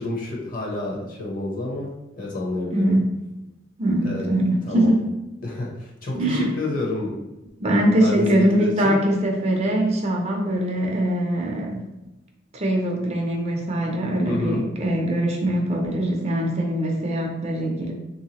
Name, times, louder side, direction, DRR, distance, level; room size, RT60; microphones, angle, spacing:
voice 1, 0.0-3.0 4.0-4.2 4.7-4.9 5.4-7.2 8.0-9.0 14.3-14.6, left 2 dB, 45° left, -2 dB, 0.9 m, -29 dB
voice 2, 2.7-3.2 3.8-5.1 6.1-6.5 7.6-11.8 12.5-17.9, right 1 dB, 35° right, 1 dB, 0.6 m, -22 dB
3.5 x 2.7 x 2.9 m, 1.0 s
head